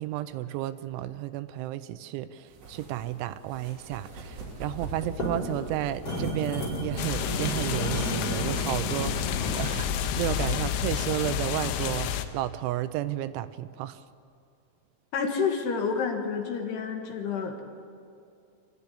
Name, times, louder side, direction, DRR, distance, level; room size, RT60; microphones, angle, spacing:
voice 1, 0.0-14.0, right 13 dB, 85° right, 13 dB, 3.1 m, -32 dB
sound 1, 2.5-8.3, right 2 dB, 70° right, 5.5 m, -42 dB
sound 2, 5.0-9.7, left 1 dB, 30° left, 5.4 m, -32 dB
sound 3, 7.0-12.3, left 10 dB, 90° left, 3.4 m, -30 dB
voice 2, 15.1-17.6, left 5 dB, 65° left, 3 dB, 3.5 m, -29 dB
26.5 x 14.0 x 9.9 m, 2.4 s
omnidirectional pair, 5.4 m